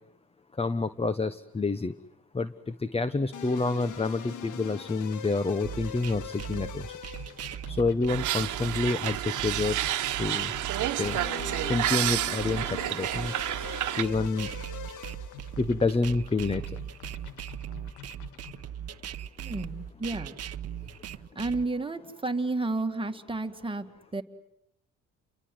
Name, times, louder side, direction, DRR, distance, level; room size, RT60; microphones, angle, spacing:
voice 1, 0.6-1.9 2.3-6.9 7.7-10.5 10.9-11.2 11.7-13.5 14.0-14.5 15.6-16.6, left 3 dB, 20° left, 13 dB, 1.1 m, -28 dB
sound 1, 3.3-18.7, left 8 dB, 80° left, 1.9 m, -44 dB
sound 2, 5.6-21.6, right 9 dB, 55° right, 1.0 m, -39 dB
sound 3, 8.1-14.0, right 13 dB, 80° right, 1.3 m, -30 dB
voice 2, 19.4-20.3 21.4-24.2, right 2 dB, 15° right, 6 dB, 2.1 m, -31 dB
30.0 x 24.0 x 7.9 m, 0.80 s
cardioid pair, 90°, 30 cm